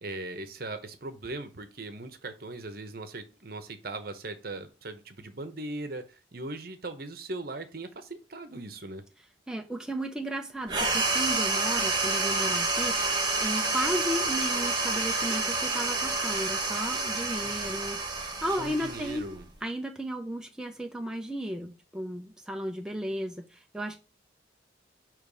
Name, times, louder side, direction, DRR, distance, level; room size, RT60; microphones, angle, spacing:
voice 1, 0.0-9.0 17.4-17.9 18.6-19.5, right 2 dB, 55° right, 9 dB, 0.9 m, -39 dB
voice 2, 9.5-19.3 19.6-24.0, equal, 5° right, 2 dB, 0.5 m, -34 dB
sound 1, 10.7-19.6, right 3 dB, 25° right, 1.2 m, -29 dB
6.5 x 3.2 x 5.2 m, 0.32 s
head